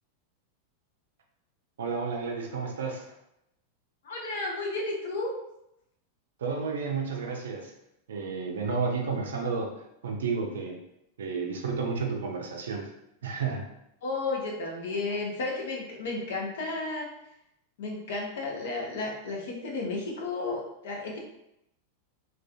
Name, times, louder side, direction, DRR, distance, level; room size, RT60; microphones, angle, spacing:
voice 1, 1.8-3.0 6.4-7.7 8.1-9.7 10.0-10.8 11.2-12.9 13.2-13.6, right 5 dB, 65° right, 1 dB, 0.4 m, -31 dB
voice 2, 4.0-5.3 14.0-17.1 17.8-21.2, left 3 dB, 55° left, -1 dB, 0.7 m, -33 dB
2.4 x 2.4 x 2.3 m, 0.82 s
figure-of-eight pair, 90°, 0 cm